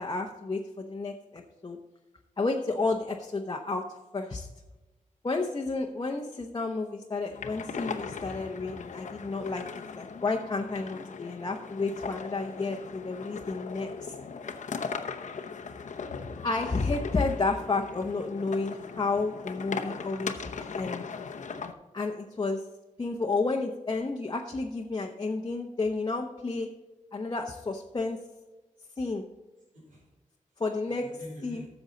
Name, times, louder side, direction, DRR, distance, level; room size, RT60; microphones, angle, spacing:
voice 1, 0.0-1.8 2.4-3.8 4.1-4.5 5.2-9.6 9.9-14.1 16.4-20.3 20.6-21.0 21.9-22.6 23.0-26.7 27.1-28.2 29.0-29.2 30.6-31.1 31.4-31.7, left 3 dB, 30° left, 1 dB, 0.9 m, -31 dB
sound 1, 7.3-21.7, left 5 dB, 65° left, 0.8 m, -39 dB
voice 2, 29.7-30.0 30.8-31.7, equal, 90° right, -7 dB, 3.9 m, -49 dB
13.5 x 7.1 x 4.0 m, 1.1 s
wide cardioid pair, 115°, 13 cm